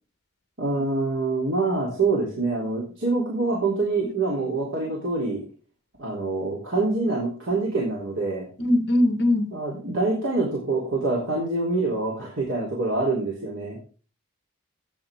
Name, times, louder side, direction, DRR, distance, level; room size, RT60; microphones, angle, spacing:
voice 1, 0.6-5.4 6.0-8.5 9.5-13.8, right 3 dB, 60° right, -4 dB, 3.5 m, -25 dB
voice 2, 8.6-9.5, left 1 dB, 50° left, 9 dB, 1.7 m, -21 dB
13.0 x 9.5 x 3.7 m, 0.38 s
head